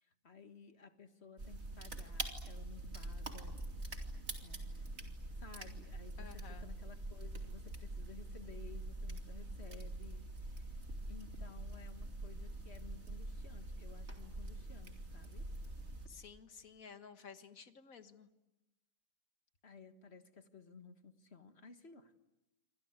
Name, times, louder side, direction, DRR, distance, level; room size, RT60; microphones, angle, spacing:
voice 1, 0.0-3.6 4.4-5.1 5.4-10.8 11.1-15.5 19.6-22.1, left 5 dB, 45° left, 8 dB, 1.8 m, -56 dB
sound 1, 1.4-16.1, right 2 dB, 45° right, 3.1 m, -45 dB
voice 2, 6.2-6.7 16.1-18.3, left 6 dB, 60° left, 9 dB, 1.9 m, -54 dB
27.5 x 26.0 x 8.1 m, 0.96 s
omnidirectional pair, 1.6 m